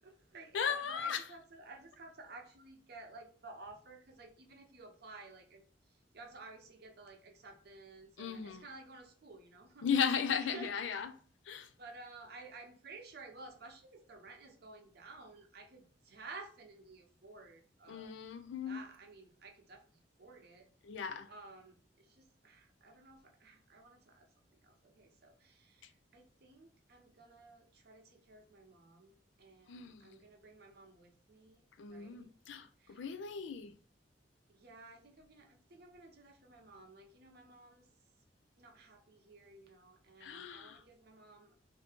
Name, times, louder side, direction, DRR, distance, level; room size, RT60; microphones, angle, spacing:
voice 1, 0.0-9.9 10.5-10.7 11.8-18.1 18.7-20.7 21.3-24.3 24.6-32.3 32.8-33.1 34.5-37.9 38.6-41.7, right 3 dB, 60° right, 0.7 m, -54 dB
voice 2, 0.5-1.3 8.2-8.6 9.8-11.1 11.4-11.7 17.9-18.8 20.8-21.3 25.8-25.9 29.7-30.2 31.8-33.7 40.2-40.8, left 7 dB, 85° left, 0.4 m, -36 dB
2.7 x 2.7 x 3.4 m
head